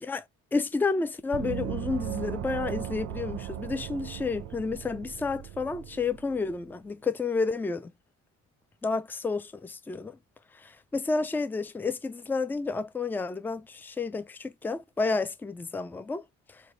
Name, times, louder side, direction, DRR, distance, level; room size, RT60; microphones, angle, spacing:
voice 1, 0.5-7.9 8.8-10.2 10.6-16.2 16.5-16.6, left 4 dB, 5° left, 0.3 m, -30 dB
Gong, 1.3-6.6, right 12 dB, 70° right, 0.6 m, -37 dB
3.3 x 2.1 x 4.0 m
cardioid pair, 90°, 30 cm